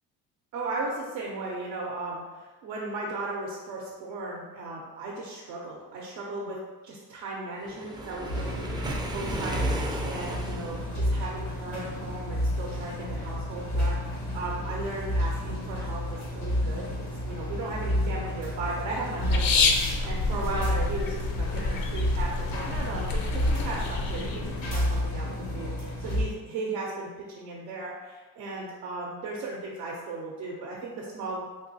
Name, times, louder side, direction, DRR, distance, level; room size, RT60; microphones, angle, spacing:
voice 1, 0.5-6.6 6.8-16.8 17.2-23.2 23.5-31.5, right 2 dB, 90° right, -3 dB, 0.7 m, -36 dB
Waves surf, 7.7-11.0, right 2 dB, 10° right, 0.3 m, -35 dB
sound 1, 8.3-26.2, left 1 dB, 85° left, 1.1 m, -31 dB
sound 2, 19.2-25.1, left 3 dB, 60° left, 0.6 m, -29 dB
3.9 x 2.9 x 2.7 m, 1.3 s
supercardioid pair, 80°, 39 cm